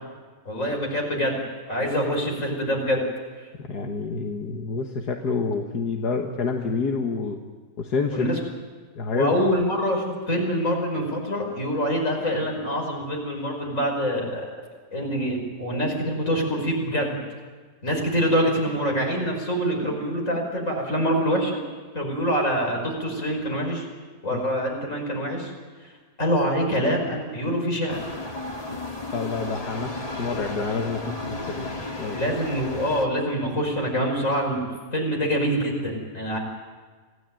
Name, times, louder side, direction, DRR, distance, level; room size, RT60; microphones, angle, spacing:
voice 1, 0.5-1.4 1.7-3.0 8.1-8.4 9.1-14.4 14.9-17.2 17.8-21.6 21.9-23.8 24.2-25.5 26.2-28.0 32.1-34.7 34.9-36.4, equal, 50° left, 1 dB, 5.8 m, -25 dB
voice 2, 3.7-7.4 7.8-8.3 9.0-9.4 24.3-24.4 29.1-29.9 30.2-31.7 32.0-32.2, left 4 dB, 80° left, 2 dB, 2.0 m, -28 dB
sound 1, 27.9-33.1, left 2 dB, 25° left, 1.8 m, -33 dB
25.5 x 16.5 x 9.1 m, 1.5 s
omnidirectional pair, 1.7 m